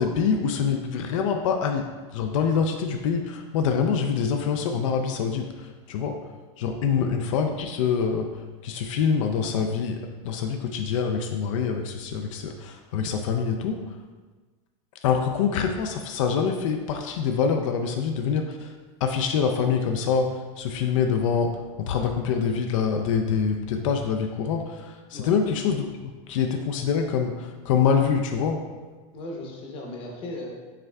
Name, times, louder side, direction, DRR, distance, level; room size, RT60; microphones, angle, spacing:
voice 1, 0.0-1.9 2.1-6.2 6.6-8.3 8.6-14.0 15.0-18.7 19.0-20.3 20.6-21.5 21.8-28.6, left 6 dB, 85° left, 4 dB, 0.4 m, -25 dB
voice 2, 29.1-30.5, left 1 dB, 30° left, -1 dB, 0.8 m, -36 dB
5.6 x 3.5 x 2.2 m, 1.3 s
supercardioid pair, 165°, 16 cm